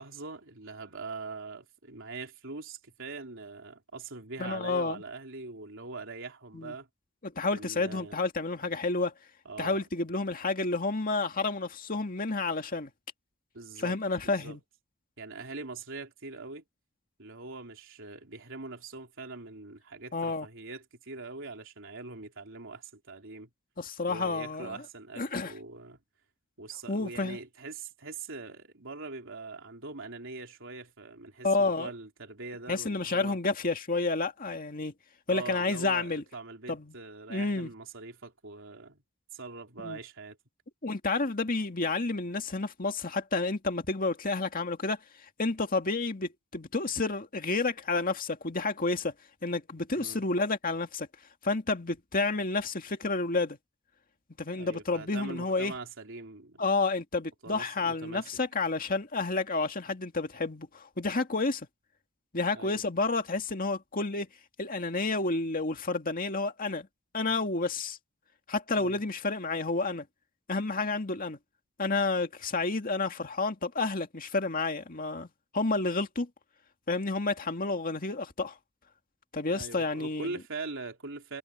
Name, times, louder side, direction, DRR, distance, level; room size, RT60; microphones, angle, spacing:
voice 1, 0.0-6.9 7.5-8.2 9.5-9.8 13.5-14.0 14.2-14.6 15.2-16.6 17.2-23.5 24.1-26.0 26.6-33.4 35.3-39.0 39.3-40.4 49.9-50.2 54.5-56.6 57.4-58.3 62.5-62.8 68.8-69.0 79.5-81.4, right 3 dB, 65° right, 3.7 m, -42 dB
voice 2, 4.4-5.0 6.5-6.7 7.2-9.1 9.6-12.9 13.8-14.6 20.1-20.5 23.8-24.8 25.2-25.5 26.9-27.4 31.4-31.9 32.7-34.9 35.3-36.2 36.7-36.9 37.3-37.7 39.8-40.0 40.8-45.0 45.4-49.1 49.4-51.1 51.4-53.6 54.4-55.7 56.6-61.7 62.3-64.3 64.6-66.9 67.1-68.0 68.5-70.0 70.5-71.4 71.8-75.3 75.5-76.3 76.9-78.6 79.3-80.3, left 3 dB, 45° left, 2.1 m, -30 dB
head